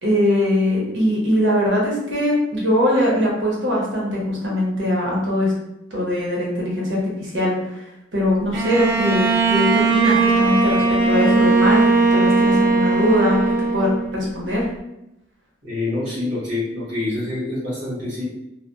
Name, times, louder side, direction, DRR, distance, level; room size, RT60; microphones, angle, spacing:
voice 1, 0.0-5.5 5.9-7.8 8.1-13.4 13.7-14.7, left 1 dB, 65° right, -4 dB, 0.8 m, -21 dB
Bowed string instrument, 8.5-14.3, right 3 dB, 45° right, 0.4 m, -18 dB
voice 2, 15.6-18.2, left 2 dB, 85° right, -9 dB, 1.1 m, -26 dB
2.7 x 2.1 x 2.2 m, 0.88 s
head